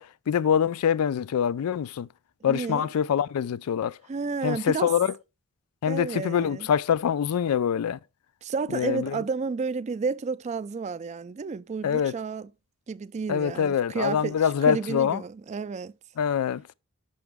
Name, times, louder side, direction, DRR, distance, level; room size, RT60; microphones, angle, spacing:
voice 1, 0.0-2.1 2.4-4.0 4.4-5.1 5.8-8.0 8.7-9.2 11.8-12.1 13.3-15.2 16.2-16.6, left 8 dB, 80° left, 0.3 m, -25 dB
voice 2, 2.5-2.9 4.1-4.9 5.9-6.7 8.4-12.5 12.9-15.9, right 4 dB, 30° right, 0.3 m, -31 dB
6.8 x 6.0 x 3.5 m
head